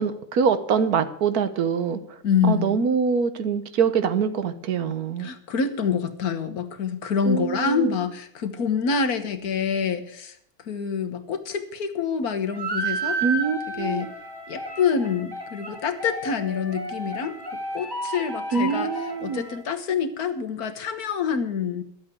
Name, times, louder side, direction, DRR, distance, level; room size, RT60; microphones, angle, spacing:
voice 1, 0.0-2.2 2.5-5.3 7.3-7.9 13.2-14.1 18.5-19.4, right 6 dB, 85° right, 11 dB, 1.5 m, -24 dB
voice 2, 2.2-2.8 5.2-10.4 10.7-13.2 13.8-14.1 14.5-17.3 17.7-18.9 19.2-21.8, left 6 dB, 85° left, 9 dB, 1.7 m, -26 dB
sound 1, 12.5-19.6, right 2 dB, 15° right, 1.9 m, -32 dB
12.0 x 8.0 x 8.1 m, 0.70 s
omnidirectional pair, 1.6 m